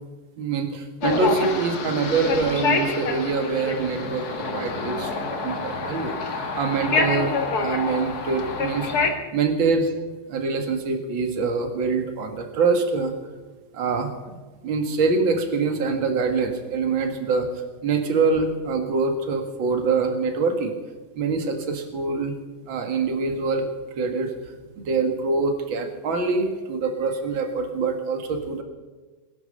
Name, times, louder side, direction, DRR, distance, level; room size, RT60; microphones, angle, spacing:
voice 1, 0.4-6.1 6.5-8.9 9.3-10.0 10.3-13.1 13.7-14.4 14.6-20.7 21.2-22.4 22.7-23.7 24.0-24.3 24.8-28.6, right 4 dB, 45° right, 6 dB, 2.1 m, -25 dB
sound 1, 1.0-9.1, left 4 dB, 50° left, 1.2 m, -27 dB
20.5 x 10.5 x 6.5 m, 1.3 s
omnidirectional pair, 3.9 m